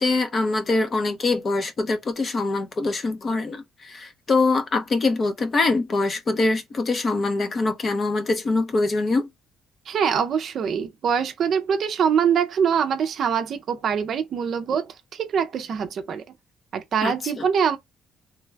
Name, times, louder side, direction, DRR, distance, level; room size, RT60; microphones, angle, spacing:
voice 1, 0.0-9.3 17.0-17.4, left 3 dB, 30° left, 0.7 m, -24 dB
voice 2, 9.9-16.2 16.7-17.8, right 7 dB, 50° right, 0.5 m, -24 dB
3.3 x 2.3 x 3.3 m
cardioid pair, 140°, 0 cm